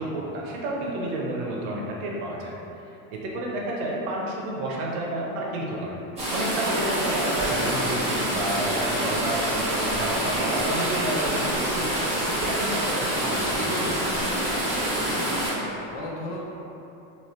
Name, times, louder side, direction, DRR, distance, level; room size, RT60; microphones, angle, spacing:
voice 1, 0.0-2.5 3.1-6.0 6.3-12.1 12.4-14.3, right 1 dB, 90° right, -3 dB, 0.8 m, -30 dB
sound 1, 6.2-15.5, right 1 dB, 15° right, 0.9 m, -26 dB
voice 2, 15.0-16.4, left 1 dB, 30° left, -4 dB, 0.4 m, -37 dB
3.0 x 2.9 x 2.9 m, 3.0 s
cardioid pair, 165°, 42 cm